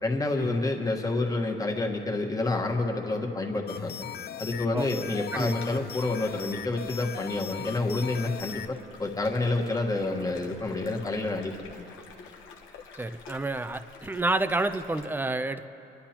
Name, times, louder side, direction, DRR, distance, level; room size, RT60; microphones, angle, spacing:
voice 1, 0.0-4.1 4.4-11.9, left 2 dB, 15° left, 1 dB, 1.4 m, -29 dB
sound 1, 0.7-6.2, left 4 dB, 65° left, 1.4 m, -50 dB
sound 2, 3.7-8.7, left 10 dB, 50° left, 0.4 m, -39 dB
sound 3, 5.5-15.1, left 5 dB, 85° left, 1.1 m, -49 dB
voice 2, 13.0-15.7, right 2 dB, 10° right, 11 dB, 0.5 m, -29 dB
27.5 x 11.0 x 2.9 m, 3.0 s
cardioid pair, 90°, 20 cm